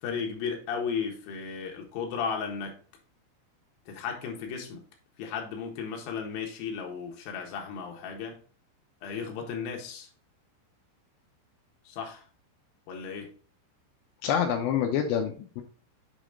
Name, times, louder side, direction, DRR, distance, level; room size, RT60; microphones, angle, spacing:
voice 1, 0.0-2.8 3.9-4.8 5.2-8.4 9.0-10.1 11.8-12.3 12.9-13.3, left 6 dB, 65° left, 2 dB, 2.5 m, -35 dB
voice 2, 14.2-15.6, left 8 dB, 85° left, 3 dB, 2.5 m, -27 dB
7.4 x 5.1 x 3.7 m, 0.40 s
omnidirectional pair, 5.9 m